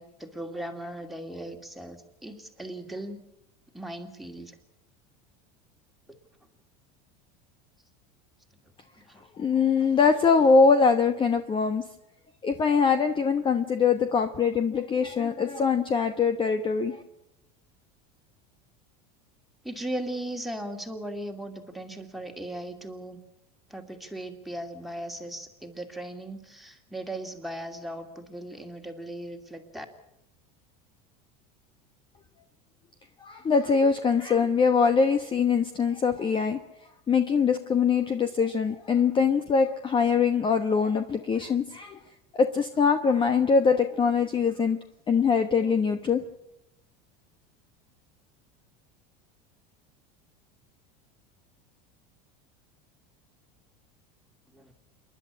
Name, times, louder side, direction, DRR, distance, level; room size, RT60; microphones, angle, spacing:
voice 1, 0.0-3.2 3.7-4.6 8.9-9.2 19.6-23.2 23.7-29.9 54.5-54.7, right 1 dB, ahead, 3 dB, 2.6 m, -38 dB
voice 2, 9.4-11.8 12.4-17.0 33.2-36.6 37.1-42.0 42.4-44.8 45.1-46.2, left 5 dB, 25° left, 8 dB, 1.1 m, -23 dB
28.0 x 11.0 x 9.8 m, 0.85 s
supercardioid pair, 130°, 21 cm